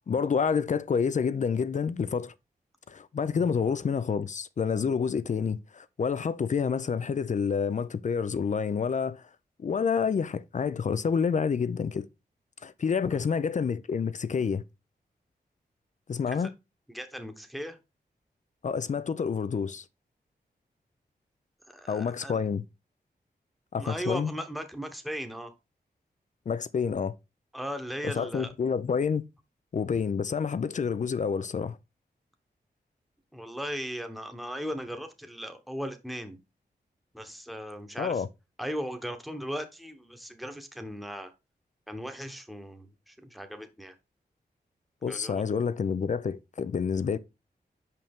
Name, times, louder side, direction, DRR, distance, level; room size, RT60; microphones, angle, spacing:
voice 1, 0.0-2.3 2.9-9.2 9.6-12.1 12.6-14.6 16.1-16.5 18.6-19.8 21.9-22.6 23.7-24.3 26.5-27.1 28.0-29.2 29.7-31.8 38.0-38.3 45.0-47.2, left 6 dB, 45° left, 0.4 m, -28 dB
voice 2, 16.9-17.8 21.7-22.4 23.8-25.5 27.5-28.5 33.3-36.4 37.1-38.2 38.6-41.3 41.9-43.9 45.1-45.4, equal, ahead, 1.0 m, -37 dB
5.5 x 5.3 x 3.5 m
cardioid pair, 75°, 17 cm